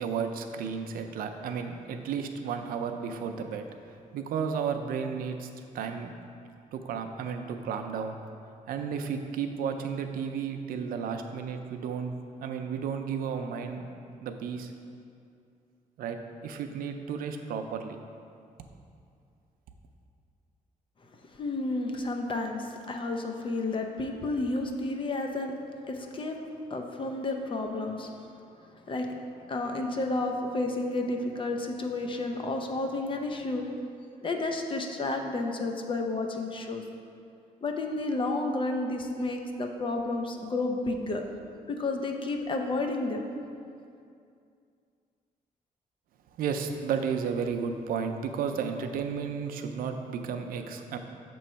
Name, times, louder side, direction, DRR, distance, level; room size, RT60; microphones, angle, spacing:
voice 1, 0.0-3.6 4.1-5.5 5.7-6.1 6.7-8.2 8.7-12.1 12.4-13.9 14.2-14.7 16.0-18.0 46.4-51.0, right 6 dB, 90° right, 6 dB, 0.5 m, -33 dB
voice 2, 21.1-25.5 25.9-26.4 26.7-28.1 28.9-29.1 29.5-33.7 34.2-36.8 37.6-41.2 41.7-43.2, left 2 dB, 35° left, 3 dB, 0.6 m, -31 dB
7.5 x 3.1 x 5.6 m, 2.5 s
cardioid pair, 105°, 14 cm